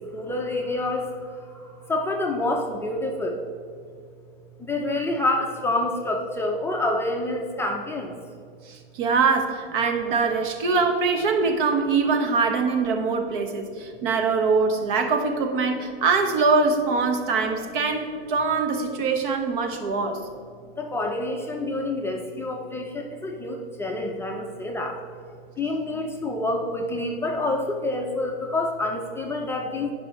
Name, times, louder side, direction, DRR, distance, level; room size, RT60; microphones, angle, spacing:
voice 1, 0.1-1.1 1.9-3.4 4.7-8.1 20.8-24.9 25.6-29.9, left 2 dB, 10° left, 0 dB, 0.6 m, -27 dB
voice 2, 8.7-20.2, right 4 dB, 55° right, 4 dB, 1.4 m, -23 dB
16.0 x 5.4 x 3.1 m, 2.3 s
supercardioid pair, 140°, 30 cm